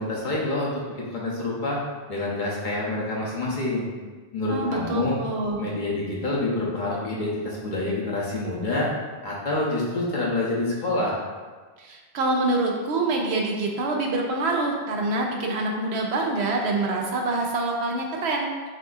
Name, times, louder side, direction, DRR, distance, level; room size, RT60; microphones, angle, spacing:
voice 1, 0.0-1.8 2.1-3.9 4.3-5.2 5.6-8.9 9.2-11.2, left 2 dB, 50° left, -5 dB, 0.9 m, -27 dB
voice 2, 4.5-5.6 11.8-18.5, right 2 dB, 85° right, 1 dB, 0.9 m, -26 dB
6.1 x 2.7 x 2.4 m, 1.4 s
omnidirectional pair, 1.1 m